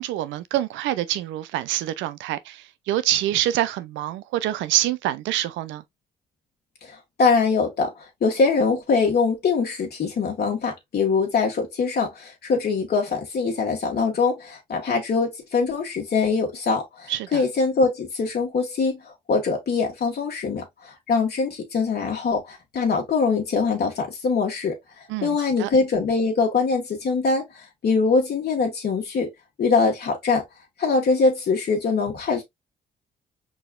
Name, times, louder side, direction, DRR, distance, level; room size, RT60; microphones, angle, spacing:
voice 1, 0.0-5.8 17.1-17.4 25.1-25.7, right 13 dB, 80° right, 0.5 m, -26 dB
voice 2, 6.8-24.8 25.2-29.3 29.6-30.4 30.8-32.4, left 4 dB, 55° left, 1.6 m, -23 dB
4.7 x 4.0 x 2.4 m
hypercardioid pair, 50°, 19 cm